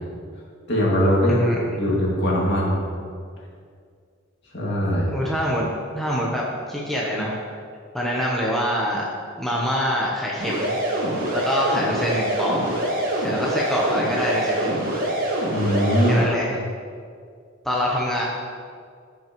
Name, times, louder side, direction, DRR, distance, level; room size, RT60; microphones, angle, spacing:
voice 1, 0.7-2.8 4.5-5.1 15.5-16.2, equal, 55° left, -5 dB, 2.3 m, -21 dB
voice 2, 1.3-1.6 5.1-5.7 5.9-7.4 7.9-9.0 9.4-10.8 11.3-12.7 13.2-14.9 16.0-16.6 17.6-18.2, equal, ahead, -5 dB, 0.9 m, -25 dB
sound 1, 10.4-16.2, right 1 dB, 45° right, 1.8 m, -25 dB
15.0 x 5.9 x 3.1 m, 2.1 s
head